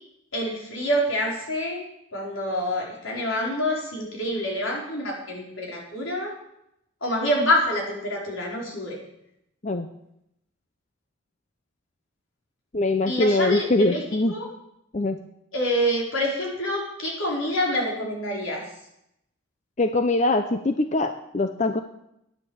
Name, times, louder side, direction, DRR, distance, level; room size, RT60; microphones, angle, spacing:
voice 1, 0.3-1.8 2.1-6.3 7.0-9.0 13.1-14.0 14.3-14.5 15.5-18.6, equal, 80° left, -2 dB, 4.6 m, -26 dB
voice 2, 12.7-14.3 14.9-15.2 19.8-21.8, left 2 dB, 35° left, 7 dB, 0.6 m, -23 dB
12.0 x 9.9 x 7.2 m, 0.80 s
head